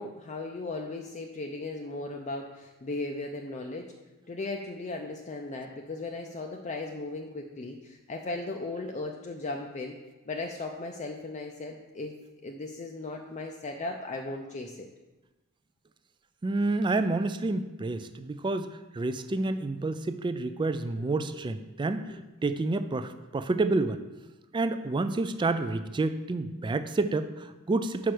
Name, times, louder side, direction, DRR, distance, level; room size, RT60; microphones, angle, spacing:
voice 1, 0.0-3.9 4.3-10.0 10.3-12.1 12.4-14.9, left 2 dB, 35° left, 2 dB, 0.5 m, -37 dB
voice 2, 16.4-18.7 18.9-22.2 22.4-24.0 24.5-28.1, right 2 dB, 20° right, 10 dB, 0.3 m, -29 dB
5.6 x 4.8 x 6.1 m, 1.1 s
head